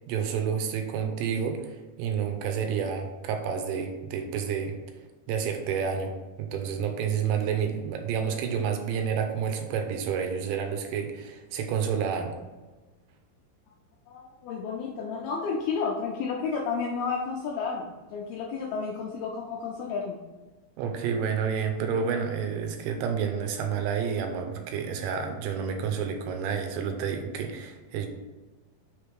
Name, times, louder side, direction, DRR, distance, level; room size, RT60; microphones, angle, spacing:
voice 1, 0.1-4.8 5.3-6.1 6.4-12.3 20.8-28.1, right 7 dB, 90° right, 4 dB, 2.9 m, -29 dB
voice 2, 14.1-20.2, left 5 dB, 85° left, -1 dB, 2.2 m, -31 dB
6.4 x 3.4 x 4.6 m, 1.2 s
omnidirectional pair, 5.0 m